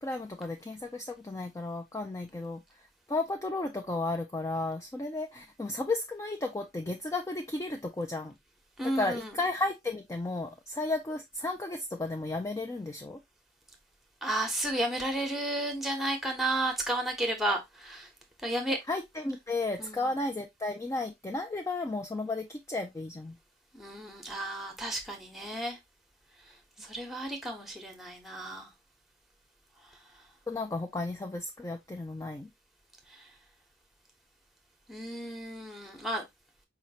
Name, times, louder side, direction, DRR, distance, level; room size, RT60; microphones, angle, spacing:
voice 1, 0.0-2.6 3.1-8.3 8.9-13.2 18.9-23.4 30.5-32.5, left 2 dB, 15° left, 0.3 m, -33 dB
voice 2, 8.8-9.3 14.2-18.1 18.4-18.8 19.8-20.1 23.7-25.8 26.8-28.7 34.9-36.2, right 1 dB, ahead, 1.0 m, -32 dB
4.9 x 2.9 x 2.8 m
head